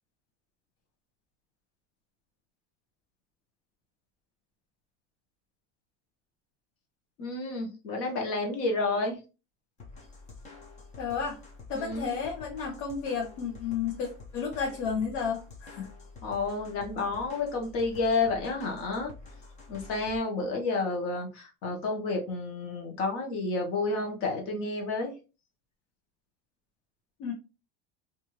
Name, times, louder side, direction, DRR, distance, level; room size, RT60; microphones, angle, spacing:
voice 1, 7.2-9.2 11.7-12.2 16.2-19.1 19.7-25.1, left 3 dB, 45° left, 1 dB, 1.0 m, -30 dB
sound 1, 9.8-20.2, left 3 dB, 20° left, 0.5 m, -48 dB
voice 2, 11.0-11.4 11.7-15.9 27.2-27.3, left 6 dB, 75° left, 0 dB, 0.8 m, -32 dB
2.6 x 2.4 x 2.9 m, 0.31 s
cardioid pair, 160°, 32 cm